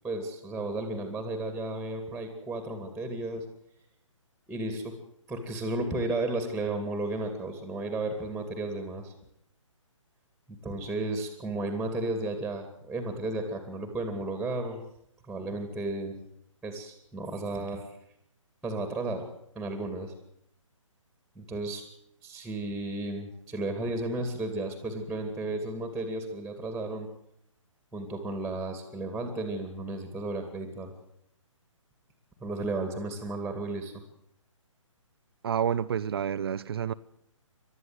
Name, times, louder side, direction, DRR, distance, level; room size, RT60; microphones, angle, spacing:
voice 1, 0.0-3.4 4.5-4.9 5.3-9.1 10.5-14.8 15.3-16.2 16.6-17.8 18.6-19.3 19.6-20.1 21.4-21.8 22.2-27.1 27.9-30.9 32.4-33.9, right 2 dB, ahead, 2.4 m, -33 dB
voice 2, 35.4-36.9, right 8 dB, 45° right, 0.7 m, -29 dB
28.0 x 12.5 x 7.9 m
figure-of-eight pair, 140°, 17 cm